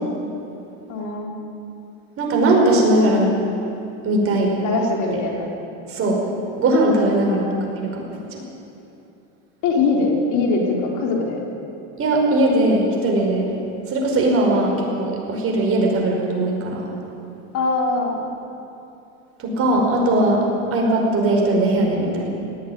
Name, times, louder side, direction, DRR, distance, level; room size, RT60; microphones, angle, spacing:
voice 1, 0.9-1.3 4.6-5.5 7.3-7.6 9.6-11.4 17.5-18.3, left 3 dB, 45° left, 0 dB, 4.0 m, -22 dB
voice 2, 2.2-3.3 4.0-4.5 5.9-6.2 6.6-7.4 7.8-8.0 8.3-8.4 12.0-13.5 13.9-16.9 19.4-20.4 20.7-22.3, right 1 dB, 35° right, 0 dB, 5.4 m, -19 dB
19.0 x 15.0 x 9.6 m, 2.8 s
supercardioid pair, 125°, 39 cm